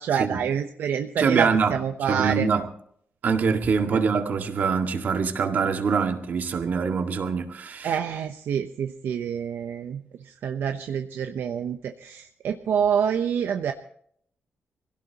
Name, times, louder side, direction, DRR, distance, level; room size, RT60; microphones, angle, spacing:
voice 1, 0.0-2.5 3.9-4.0 7.8-13.7, right 8 dB, 75° right, 0.9 m, -27 dB
voice 2, 1.2-1.8 2.1-2.7 3.2-7.9, right 5 dB, 50° right, 1.9 m, -24 dB
25.5 x 17.0 x 3.0 m
wide cardioid pair, 160°, 4 cm